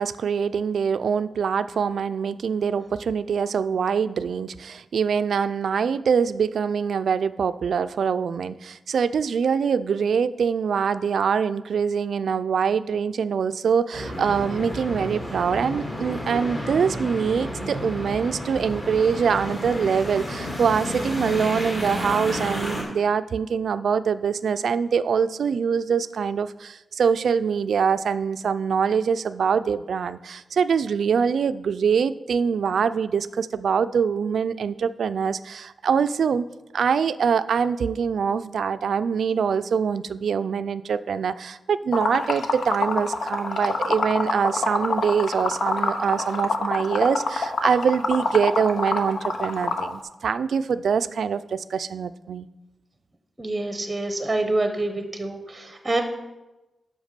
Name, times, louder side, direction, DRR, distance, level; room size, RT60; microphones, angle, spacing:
voice 1, 0.0-36.5 36.7-52.5, right 6 dB, 85° right, 13 dB, 0.3 m, -24 dB
sound 1, 13.9-22.8, equal, 30° left, 2.5 m, -31 dB
Liquid, 41.9-49.9, left 3 dB, 85° left, 0.9 m, -26 dB
voice 2, 53.4-56.0, right 2 dB, 15° right, 6 dB, 0.8 m, -26 dB
8.0 x 5.8 x 6.7 m, 1.0 s
wide cardioid pair, 155°, 0 cm